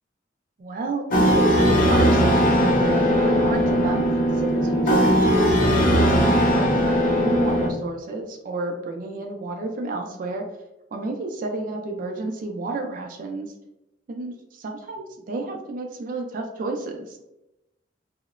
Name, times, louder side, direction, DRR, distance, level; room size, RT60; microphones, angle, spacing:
voice 1, 0.6-4.1 4.3-6.1 6.5-10.4 10.9-13.5 14.1-14.6 14.9-17.2, right 2 dB, 50° right, 2 dB, 0.3 m, -31 dB
sound 1, 1.1-7.7, equal, 50° left, 0.5 m, -19 dB
2.8 x 2.0 x 2.4 m, 0.89 s
head